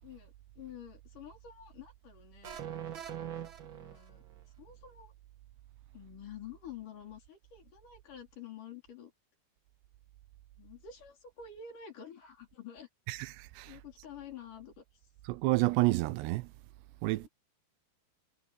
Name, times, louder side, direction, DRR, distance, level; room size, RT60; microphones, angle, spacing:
voice 1, 0.0-2.6 3.6-4.2 4.6-5.1 5.9-9.1 10.6-12.9 13.7-14.8 17.2-17.3, left 8 dB, 50° left, 5.4 m, -49 dB
sound 1, 2.4-4.4, right 10 dB, 65° right, 1.2 m, -42 dB
voice 2, 13.1-13.7 15.3-16.5 17.0-17.3, right 20 dB, 85° right, 2.9 m, -29 dB
omnidirectional pair, 4.8 m